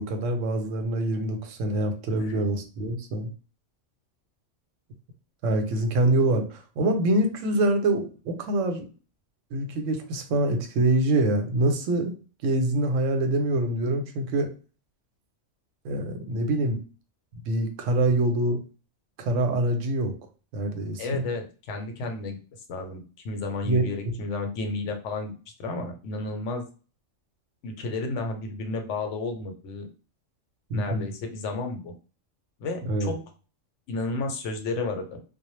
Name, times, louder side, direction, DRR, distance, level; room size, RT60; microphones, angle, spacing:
voice 1, 0.0-3.3 5.4-8.9 9.5-12.2 12.4-14.5 15.8-16.8 17.5-18.6 19.2-20.1 20.5-21.3 23.7-23.8 30.7-31.1 32.9-33.1, right 1 dB, 90° right, 6 dB, 0.9 m, -25 dB
voice 2, 21.0-22.4 22.7-25.3 25.6-26.7 27.6-29.9 30.7-31.9 32.6-33.2 33.9-35.2, left 3 dB, 75° left, 5 dB, 0.9 m, -32 dB
2.1 x 2.0 x 3.0 m, 0.36 s
omnidirectional pair, 1.3 m